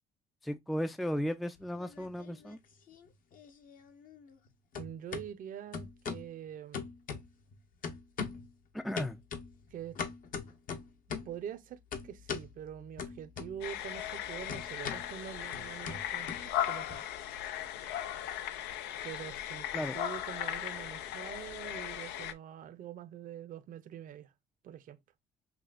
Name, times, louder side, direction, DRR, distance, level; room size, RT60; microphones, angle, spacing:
voice 1, 0.4-2.6 8.7-9.2 19.7-19.9, equal, ahead, 0.3 m, -35 dB
sound 1, 1.6-2.6 2.9-4.5 4.7-5.3 5.7-6.3 6.7-7.5 7.8-8.5 9.0-11.4 11.9-12.5 13.0-13.8 14.1-16.9, left 6 dB, 55° left, 1.0 m, -41 dB
voice 2, 4.8-6.8 9.7-10.0 11.2-17.1 19.0-24.3 24.6-25.0, right 9 dB, 55° right, 0.6 m, -45 dB
sound 2, 13.6-22.3, left 11 dB, 85° left, 0.5 m, -37 dB
5.9 x 2.3 x 2.5 m
cardioid pair, 110°, 17 cm